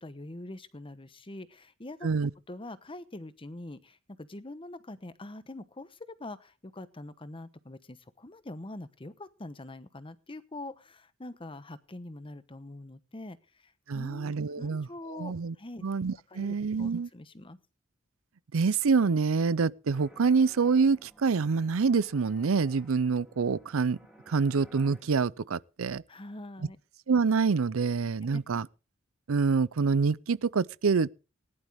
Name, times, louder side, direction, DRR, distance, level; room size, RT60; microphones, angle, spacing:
voice 1, 0.0-2.1 2.5-15.8 16.3-17.6 26.1-26.8 28.2-28.4, left 2 dB, 25° left, 1.0 m, -44 dB
voice 2, 13.9-15.5 15.8-17.1 18.5-24.0 24.3-26.0 27.1-28.7 29.3-31.1, right 5 dB, 85° right, 0.5 m, -26 dB
sound 1, 19.9-25.0, equal, ahead, 3.9 m, -57 dB
19.0 x 11.0 x 3.6 m
head